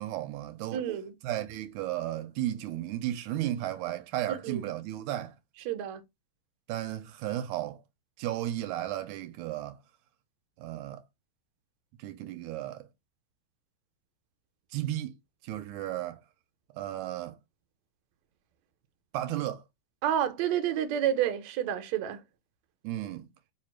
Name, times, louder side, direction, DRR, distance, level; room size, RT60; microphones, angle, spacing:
voice 1, 0.0-0.8 1.2-5.3 6.7-7.8 8.2-9.8 10.6-11.0 12.0-12.9 14.7-15.1 15.4-16.2 16.8-17.4 19.1-19.6 22.8-23.3, right 13 dB, 90° right, 2.0 m, -34 dB
voice 2, 0.7-1.1 4.4-4.6 5.6-6.0 20.0-22.2, right 10 dB, 75° right, 1.8 m, -29 dB
4.6 x 2.4 x 4.4 m
omnidirectional pair, 3.4 m